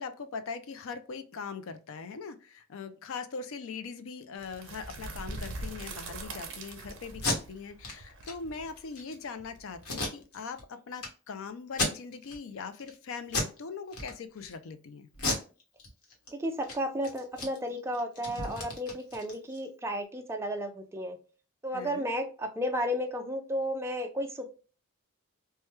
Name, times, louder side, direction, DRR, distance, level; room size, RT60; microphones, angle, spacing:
voice 1, 0.0-15.1 21.7-22.1, left 5 dB, 60° left, 10 dB, 0.4 m, -41 dB
sound 1, 4.4-10.2, right 2 dB, 60° right, 0.7 m, -42 dB
Packing tape duct tape, 7.1-7.4 7.8-7.9 8.2-8.3 8.8-9.1 9.8-10.6 11.0-11.1 11.7-12.4 12.7-12.9 13.3-13.6 13.9-14.5 15.1-16.3 16.6-16.7 17.0-19.7, left 2 dB, 85° left, 1.2 m, -33 dB
voice 2, 16.3-21.2 21.6-24.5, equal, 10° right, 4 dB, 0.4 m, -33 dB
3.2 x 2.2 x 3.0 m, 0.35 s
head